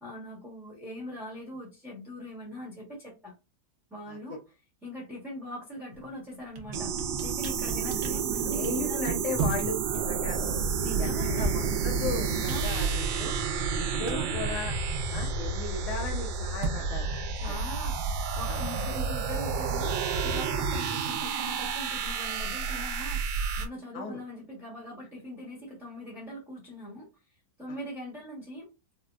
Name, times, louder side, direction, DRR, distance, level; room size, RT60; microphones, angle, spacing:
voice 1, 0.0-3.3 3.9-4.4 4.8-9.2 10.8-11.5 12.5-12.9 13.9-14.5 17.3-18.0 18.3-28.7, equal, ahead, -4 dB, 0.9 m, -41 dB
sound 1, 5.9-6.1 6.4-15.3 15.6-21.5, right 4 dB, 60° right, 0.8 m, -39 dB
sound 2, 6.7-23.7, right 5 dB, 85° right, 1.3 m, -30 dB
voice 2, 8.5-10.6 11.0-13.4 13.8-14.7 15.1-17.1 17.5-17.7 18.5-18.6 23.9-24.2, left 3 dB, 65° left, 2 dB, 0.8 m, -36 dB
4.2 x 2.1 x 2.4 m, 0.27 s
omnidirectional pair, 1.9 m